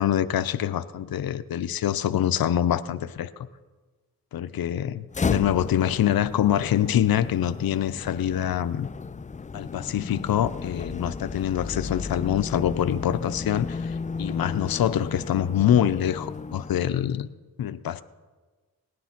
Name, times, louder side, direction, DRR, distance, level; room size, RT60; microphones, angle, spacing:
voice 1, 0.0-3.5 4.3-8.9 9.5-17.3 17.6-18.0, left 10 dB, 85° left, 13 dB, 0.6 m, -25 dB
sound 1, 5.1-17.1, left 5 dB, 20° left, 0.4 m, -34 dB
18.5 x 9.7 x 5.9 m, 1.3 s
cardioid pair, 65°, 35 cm